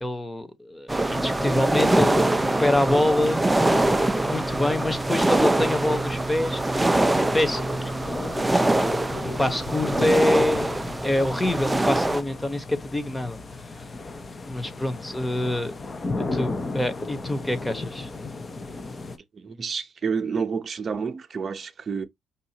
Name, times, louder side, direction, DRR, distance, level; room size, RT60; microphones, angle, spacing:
voice 1, 0.0-3.4 4.3-7.6 8.0-8.1 8.6-13.4 14.5-15.7 16.3-18.1, left 1 dB, 10° left, 1.2 m, -26 dB
sound 1, 0.9-12.2, right 2 dB, 15° right, 0.5 m, -24 dB
sound 2, 1.1-19.2, left 3 dB, 30° left, 0.8 m, -36 dB
voice 2, 19.3-22.1, right 5 dB, 45° right, 0.8 m, -29 dB
5.5 x 2.5 x 2.9 m
cardioid pair, 90°, 0 cm